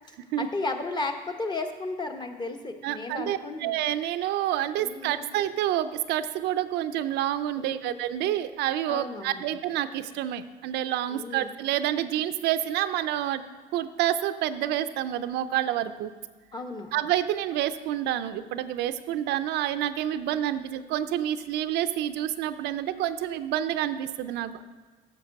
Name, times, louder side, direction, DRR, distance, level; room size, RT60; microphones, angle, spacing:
voice 1, 0.4-3.7 4.8-5.3 7.6-8.0 8.9-9.4 11.1-11.5 16.5-16.9, left 3 dB, 25° left, 5 dB, 1.0 m, -34 dB
voice 2, 2.8-13.4 13.7-16.1 16.9-24.6, right 12 dB, 85° right, 11 dB, 0.5 m, -28 dB
9.2 x 6.5 x 5.2 m, 1.4 s
cardioid pair, 110°, 17 cm